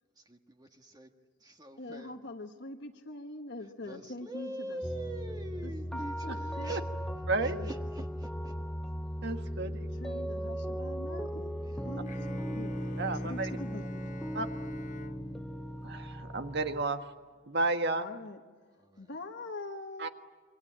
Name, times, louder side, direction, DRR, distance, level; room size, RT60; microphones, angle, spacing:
voice 1, 0.2-1.1 1.4-2.2 3.6-6.8 7.4-8.5 11.6-11.9 18.8-19.1, right 1 dB, 20° right, 4 dB, 1.5 m, -44 dB
voice 2, 1.8-4.8 5.6-6.8 7.4-7.8 10.0-14.2 18.0-18.4 19.0-20.1, left 2 dB, 60° left, 3 dB, 1.5 m, -44 dB
sound 1, 4.8-16.8, equal, 5° left, 0.8 m, -37 dB
voice 3, 7.3-7.6 9.2-9.9 13.0-13.5 14.3-14.5 15.8-17.0 17.5-18.1 20.0-20.1, right 3 dB, 60° right, 7 dB, 1.6 m, -32 dB
Bowed string instrument, 10.1-13.5, left 2 dB, 85° left, 2.4 m, -55 dB
Bowed string instrument 2, 12.1-16.9, left 1 dB, 40° left, 1.0 m, -49 dB
27.5 x 24.5 x 8.8 m, 1.5 s
head